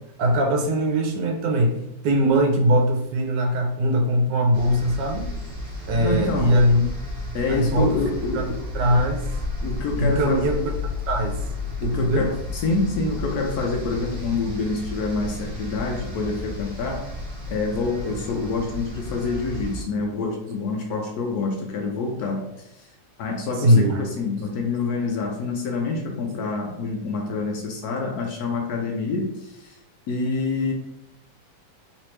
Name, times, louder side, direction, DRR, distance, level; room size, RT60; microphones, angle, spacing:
voice 1, 0.2-5.3 5.9-6.9 7.5-8.0 8.3-8.5 8.7-9.3 10.0-10.6 11.1-11.4 11.8-12.3 23.6-24.0, equal, 80° right, 3 dB, 1.3 m, -21 dB
sound 1, 4.5-19.8, left 2 dB, 50° right, 0.6 m, -33 dB
voice 2, 5.9-6.6 7.3-8.6 8.9-9.0 9.6-10.5 11.8-17.1 17.5-22.5 23.2-29.7 30.1-30.7, left 3 dB, 70° left, 1 dB, 1.0 m, -27 dB
3.3 x 3.1 x 3.1 m, 0.86 s
omnidirectional pair, 1.9 m